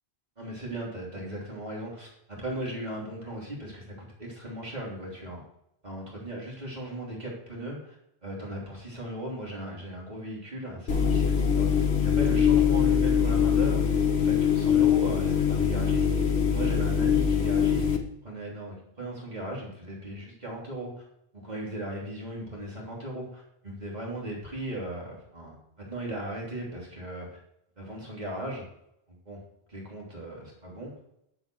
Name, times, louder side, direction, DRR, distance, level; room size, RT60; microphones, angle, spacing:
voice 1, 0.4-5.4 5.8-7.9 8.2-16.1 16.5-18.0 18.2-21.0 21.3-27.3 27.8-28.6 29.1-29.4 29.7-30.9, right 1 dB, 40° right, -4 dB, 3.4 m, -37 dB
sound 1, 10.9-18.0, left 7 dB, 70° left, 1.4 m, -23 dB
11.0 x 8.1 x 4.7 m, 0.77 s
omnidirectional pair, 1.1 m